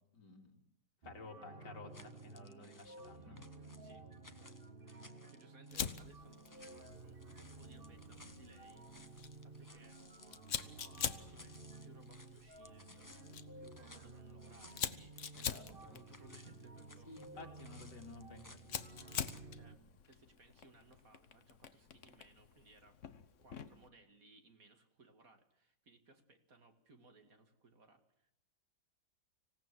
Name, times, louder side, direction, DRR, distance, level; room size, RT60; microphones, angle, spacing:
voice 1, 0.1-0.6 1.0-3.4 15.3-16.0 17.1-18.9, left 3 dB, 70° left, 3 dB, 3.5 m, -53 dB
sound 1, 1.0-19.8, right 3 dB, 30° right, 1.7 m, -54 dB
sound 2, 1.9-19.4, left 2 dB, 15° left, 0.9 m, -61 dB
voice 2, 4.4-10.0 10.3-17.9 19.5-23.0 23.4-28.3, right 3 dB, 50° right, 7 dB, 2.5 m, -65 dB
Fire, 5.7-23.9, left 8 dB, 50° left, 1.2 m, -47 dB
25.5 x 17.5 x 7.7 m, 0.74 s
omnidirectional pair, 1.9 m